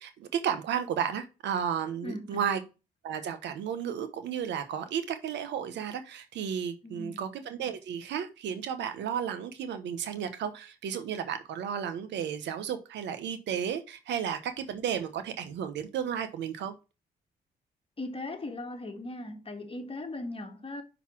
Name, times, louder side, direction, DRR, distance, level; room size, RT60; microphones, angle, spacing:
voice 1, 0.0-2.6 3.0-16.7, right 8 dB, 75° right, 1.0 m, -33 dB
voice 2, 2.0-2.6 6.8-7.4 18.0-20.8, left 2 dB, 30° left, 1.6 m, -39 dB
5.7 x 4.1 x 6.0 m
supercardioid pair, 60°, 18 cm